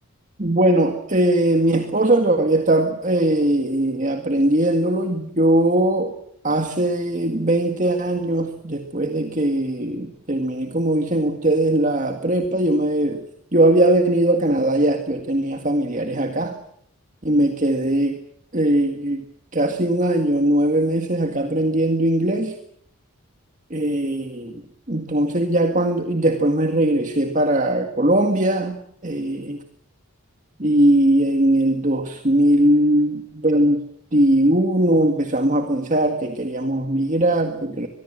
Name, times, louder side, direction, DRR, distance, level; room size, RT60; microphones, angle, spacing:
voice 1, 0.4-6.1 6.4-13.2 13.5-16.5 17.2-18.2 18.5-19.2 19.5-22.6 23.7-24.6 24.9-28.8 29.0-29.6 30.6-33.8 34.1-37.9, right 1 dB, 35° right, 6 dB, 1.9 m, -20 dB
24.0 x 22.0 x 7.6 m, 0.68 s
head